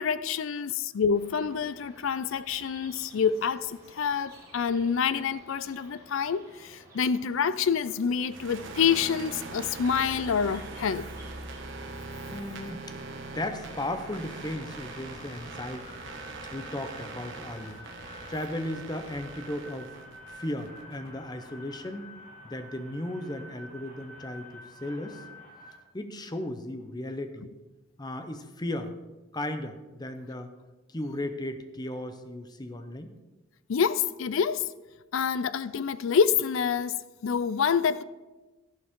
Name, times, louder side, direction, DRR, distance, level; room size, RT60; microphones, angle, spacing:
voice 1, 0.0-11.1 33.7-34.7 35.1-37.0 37.2-38.0, left 6 dB, 65° left, 0.4 m, -27 dB
sound 1, 1.1-19.3, right 1 dB, 15° right, 3.9 m, -54 dB
sound 2, 8.3-21.1, right 3 dB, 60° right, 1.2 m, -42 dB
sound 3, 12.1-25.8, left 1 dB, 40° left, 2.5 m, -49 dB
voice 2, 12.3-12.8 13.3-15.9 16.5-17.8 18.3-19.9 20.3-22.1 22.4-25.2 25.9-27.5 28.0-29.0 29.3-30.5 30.9-33.1, left 1 dB, 20° left, 0.7 m, -36 dB
12.5 x 11.0 x 3.7 m
head